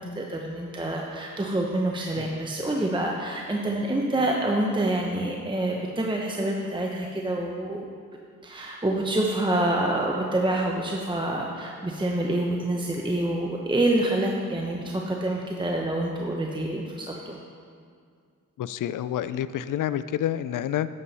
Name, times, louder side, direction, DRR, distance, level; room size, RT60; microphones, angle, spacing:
voice 1, 0.0-7.8 8.4-17.4, right 1 dB, 15° right, -1 dB, 0.9 m, -27 dB
voice 2, 18.6-20.9, left 11 dB, 65° left, 15 dB, 0.5 m, -28 dB
11.5 x 7.1 x 4.2 m, 2.2 s
cardioid pair, 70°, 34 cm